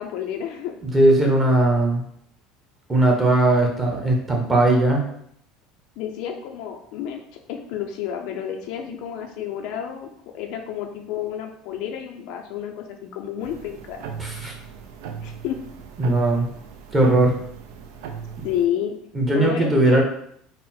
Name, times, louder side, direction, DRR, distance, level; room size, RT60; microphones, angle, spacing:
voice 1, 0.0-0.8 6.0-7.2 7.5-14.0 15.2-15.6 18.4-18.9 19.3-20.0, left 9 dB, 65° left, 3 dB, 0.4 m, -30 dB
voice 2, 0.9-2.0 2.9-5.1 14.2-14.6 16.0-16.5 16.9-17.4 18.4-18.5 19.1-20.0, right 2 dB, 15° right, -1 dB, 0.8 m, -18 dB
sound 1, 13.4-18.7, right 6 dB, 80° right, 0.4 m, -37 dB
3.8 x 2.0 x 4.2 m, 0.69 s
cardioid pair, 140°, 0 cm